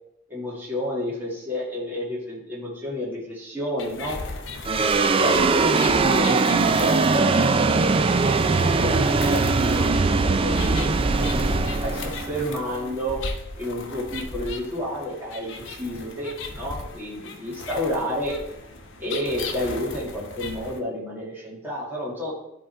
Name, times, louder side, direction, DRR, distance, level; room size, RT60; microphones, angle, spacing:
voice 1, 0.3-4.2 4.8-8.3 8.6-13.2 13.6-18.3 19.0-22.3, equal, 10° right, -6 dB, 2.0 m, -31 dB
sound 1, 3.8-20.8, left 3 dB, 60° left, 0.9 m, -37 dB
sound 2, 4.6-13.2, right 4 dB, 25° right, 0.3 m, -21 dB
11.0 x 3.8 x 4.5 m, 0.83 s
head